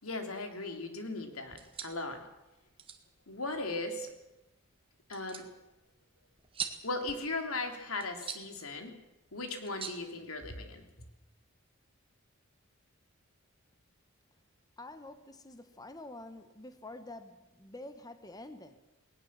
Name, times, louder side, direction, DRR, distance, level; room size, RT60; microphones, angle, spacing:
voice 1, 0.0-2.2 3.3-4.1 5.1-5.5 6.8-8.9 9.3-10.8, left 2 dB, 90° left, 5 dB, 3.4 m, -37 dB
sound 1, 1.4-10.9, right 6 dB, 25° right, 1.8 m, -47 dB
voice 2, 14.8-18.8, left 2 dB, 20° left, 9 dB, 1.2 m, -47 dB
20.0 x 19.0 x 7.5 m, 0.97 s
head